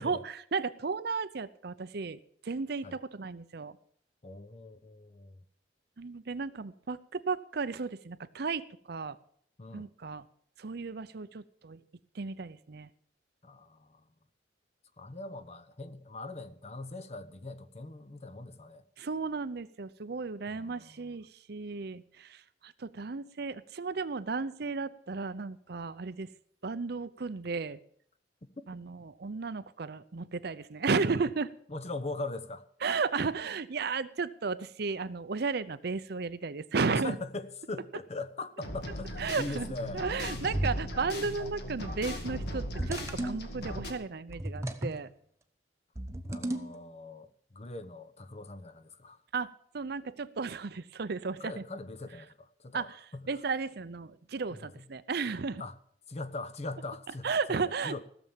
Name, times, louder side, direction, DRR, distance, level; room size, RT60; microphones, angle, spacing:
voice 1, 0.0-3.8 6.0-8.6 8.9-9.2 9.7-10.2 10.6-11.8 12.1-12.9 19.0-26.3 26.6-27.8 28.7-31.5 32.8-37.2 39.2-39.7 39.9-45.1 49.3-51.6 52.7-53.0 53.3-55.6 57.2-58.0, right 4 dB, 60° right, 0.6 m, -34 dB
voice 2, 4.2-5.4 9.6-9.9 13.4-14.0 15.0-18.8 20.5-21.2 31.7-32.6 36.9-40.0 46.3-49.2 51.4-53.3 54.5-54.8 55.6-55.8 56.1-58.0, left 2 dB, 35° left, 0.8 m, -41 dB
sound 1, 38.6-43.9, left 1 dB, 65° left, 2.1 m, -39 dB
sound 2, 40.5-41.0 42.4-43.4 44.3-45.0 46.0-46.8, right 1 dB, 15° right, 0.9 m, -34 dB
15.5 x 7.1 x 7.2 m
head